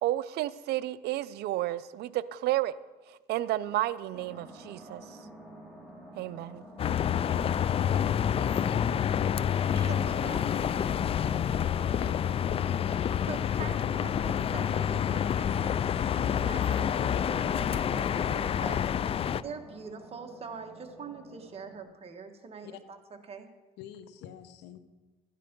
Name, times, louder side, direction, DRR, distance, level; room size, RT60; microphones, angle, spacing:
voice 1, 0.0-2.7 3.3-5.2 6.2-6.6 7.3-7.4 9.7-9.9, right 15 dB, 75° right, 16 dB, 0.5 m, -31 dB
sound 1, 4.1-21.8, right 1 dB, ahead, 3.3 m, -49 dB
sound 2, 6.8-19.4, left 9 dB, 35° left, 0.4 m, -28 dB
voice 2, 9.5-10.5 13.3-18.9 19.4-23.0 23.3-23.5, right 5 dB, 35° right, 4 dB, 1.6 m, -44 dB
voice 3, 11.9-12.7 22.6-22.8 23.8-24.8, left 10 dB, 85° left, 11 dB, 1.0 m, -46 dB
12.5 x 10.0 x 5.3 m, 1.2 s
cardioid pair, 110°, 17 cm